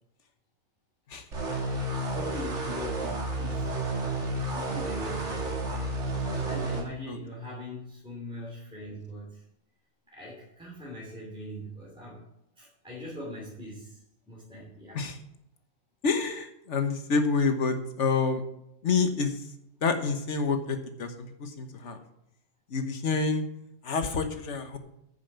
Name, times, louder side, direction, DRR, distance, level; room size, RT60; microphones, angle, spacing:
sound 1, 1.3-6.8, right 2 dB, 90° right, 2.1 m, -31 dB
voice 1, 1.5-3.7 4.0-9.4 10.1-12.2 12.6-14.0 14.3-15.0, left 1 dB, 5° right, -6 dB, 3.1 m, -42 dB
voice 2, 16.0-18.4 18.8-19.4 19.8-22.0 22.7-23.4 23.8-24.8, left 4 dB, 85° left, 8 dB, 1.5 m, -28 dB
9.6 x 7.1 x 6.9 m, 0.81 s
omnidirectional pair, 1.2 m